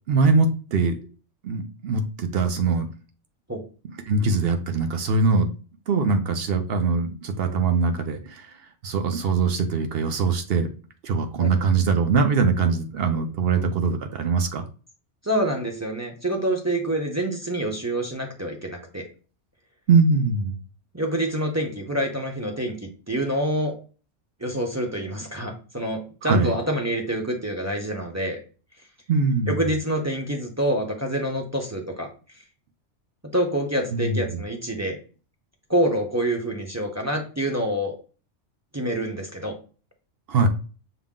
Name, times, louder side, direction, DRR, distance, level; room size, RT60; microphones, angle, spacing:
voice 1, 0.1-1.0 1.4-2.9 4.1-5.5 5.9-8.5 8.8-10.7 11.0-14.6 19.9-20.6 26.2-26.5 29.1-29.6 33.9-34.4 40.3-40.5, right 4 dB, 60° right, 6 dB, 0.8 m, -22 dB
voice 2, 15.2-19.0 20.9-23.8 24.4-28.4 29.5-32.1 33.3-35.0 35.7-38.0 38.7-39.6, right 1 dB, 20° right, 1 dB, 0.5 m, -26 dB
5.7 x 2.1 x 3.6 m, 0.37 s
omnidirectional pair, 1.2 m